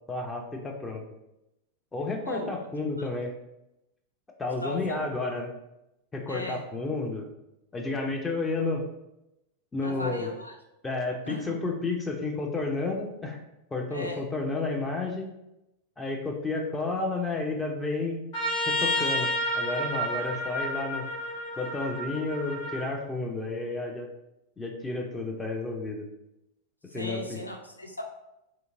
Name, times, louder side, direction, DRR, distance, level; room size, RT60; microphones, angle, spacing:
voice 1, 0.1-1.0 1.9-3.3 4.4-5.5 6.1-7.3 7.7-8.8 9.7-10.3 10.8-13.4 13.7-15.3 16.0-18.3 18.7-21.0 21.6-24.1 24.6-26.1 26.9-27.4, left 3 dB, 15° left, 1 dB, 0.4 m, -31 dB
voice 2, 4.6-5.0 6.3-6.6 9.8-10.5 11.3-11.5 13.9-14.2 26.9-28.0, left 1 dB, 85° left, 2 dB, 0.3 m, -36 dB
Trumpet, 18.3-22.9, equal, 50° left, 1.1 m, -30 dB
2.7 x 2.4 x 2.6 m, 0.88 s
figure-of-eight pair, 90°, 0 cm